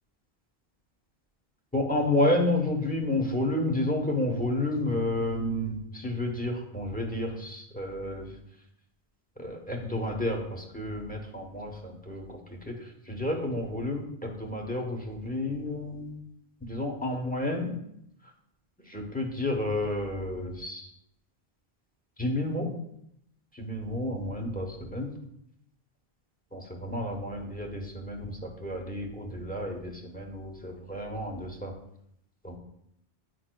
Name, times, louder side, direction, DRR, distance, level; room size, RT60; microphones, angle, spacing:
voice 1, 1.7-8.4 9.4-12.4 12.6-16.2 16.6-17.7 18.9-20.9 22.2-22.7 23.5-25.1 26.5-31.7 32.4-32.6, left 1 dB, 10° left, 1 dB, 0.9 m, -31 dB
9.3 x 5.4 x 2.2 m, 0.74 s
omnidirectional pair, 1.0 m